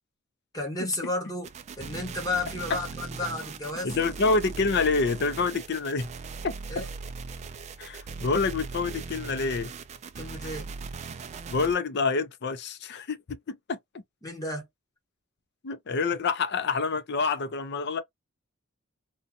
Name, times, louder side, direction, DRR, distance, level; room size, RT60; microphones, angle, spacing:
voice 1, 0.5-1.5 1.8-4.0 6.7-6.9 10.2-10.7 14.2-14.7, left 2 dB, 15° left, 1.0 m, -32 dB
sound 1, 1.4-11.7, right 4 dB, 30° right, 0.3 m, -39 dB
voice 2, 3.8-6.1 6.4-6.5 7.8-9.7 11.5-13.8 15.6-18.0, left 4 dB, 50° left, 0.5 m, -27 dB
2.5 x 2.2 x 2.6 m
head